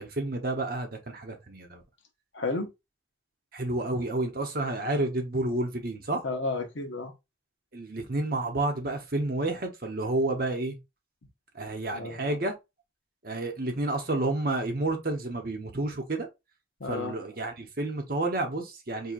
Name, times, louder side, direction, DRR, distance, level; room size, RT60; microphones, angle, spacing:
voice 1, 0.0-1.8 3.5-6.2 7.7-10.8 11.5-12.5 13.2-16.3 16.9-19.1, right 2 dB, 50° right, 0.9 m, -30 dB
voice 2, 2.3-2.7 6.2-7.1 11.9-12.4 16.8-17.2, left 3 dB, 80° left, 0.9 m, -32 dB
4.5 x 2.7 x 2.5 m
head